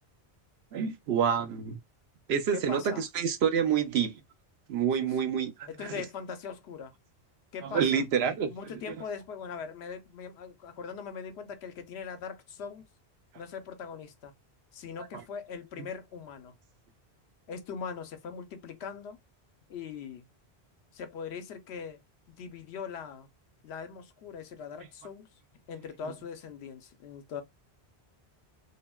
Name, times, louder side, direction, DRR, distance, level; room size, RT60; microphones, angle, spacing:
voice 1, 0.7-1.8 2.3-4.2 4.7-5.9 7.6-8.5, right 7 dB, 75° right, 0.8 m, -28 dB
voice 2, 2.5-3.0 5.0-5.3 5.7-6.9 7.5-8.0 8.5-12.8 13.4-14.3 14.7-16.6 17.5-19.2 19.7-20.3 20.9-22.0 22.3-23.3 23.6-25.3 25.7-27.4, left 6 dB, 75° left, 0.9 m, -41 dB
3.6 x 2.0 x 2.2 m
omnidirectional pair, 1.1 m